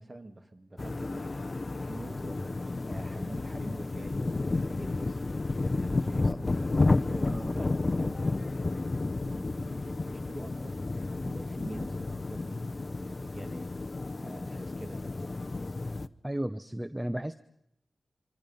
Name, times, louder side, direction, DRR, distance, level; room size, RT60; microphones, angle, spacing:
voice 1, 0.0-5.2 5.6-13.7 14.2-15.5, right 1 dB, 25° right, 7 dB, 2.2 m, -46 dB
sound 1, 0.8-16.1, left 3 dB, 35° left, 0.8 m, -31 dB
voice 2, 6.1-6.4 7.3-7.6 16.2-17.3, right 1 dB, 10° right, 11 dB, 0.8 m, -34 dB
26.0 x 25.0 x 5.6 m, 0.78 s
wide cardioid pair, 110°, 0 cm